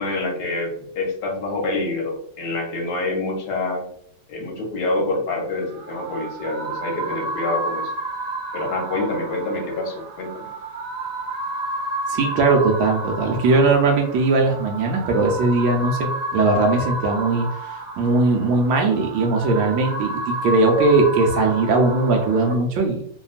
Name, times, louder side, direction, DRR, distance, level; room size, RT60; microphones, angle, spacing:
voice 1, 0.0-3.8 4.3-7.9 8.5-10.5, left 2 dB, 65° left, -1 dB, 1.3 m, -26 dB
sound 1, 5.5-22.5, right 1 dB, 65° right, 1.1 m, -31 dB
voice 2, 12.1-17.5 18.0-23.0, right 3 dB, 85° right, 2 dB, 1.3 m, -19 dB
3.3 x 2.2 x 2.4 m, 0.65 s
omnidirectional pair, 2.0 m